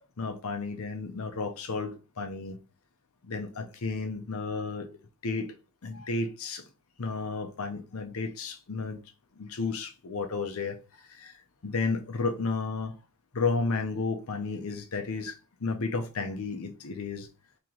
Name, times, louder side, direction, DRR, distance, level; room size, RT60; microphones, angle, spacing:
voice 1, 0.2-2.6 3.2-4.9 5.2-5.5 5.8-6.6 7.0-9.0 9.4-11.4 11.6-12.9 13.3-17.3, left 4 dB, 70° left, 0.7 m, -32 dB
3.0 x 2.9 x 3.8 m
head